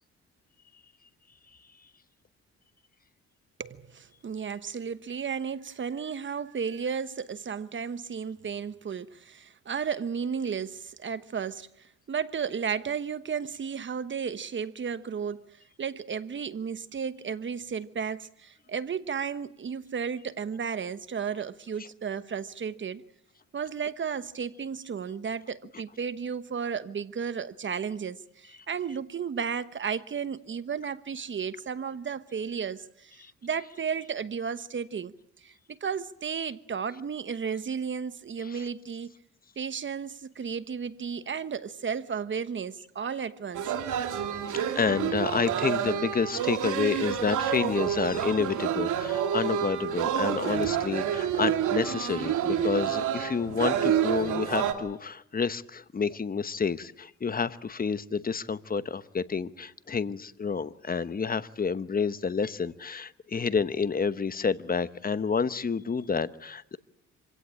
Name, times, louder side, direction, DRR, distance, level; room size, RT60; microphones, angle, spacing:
voice 1, 3.6-23.0 23.5-39.1 39.6-43.7 45.5-45.6, right 6 dB, 40° right, 1.1 m, -34 dB
sound 1, 43.5-54.7, right 9 dB, 80° right, 2.5 m, -28 dB
voice 2, 44.5-66.8, left 5 dB, 30° left, 1.0 m, -29 dB
26.0 x 16.5 x 8.8 m
cardioid pair, 90°, 30 cm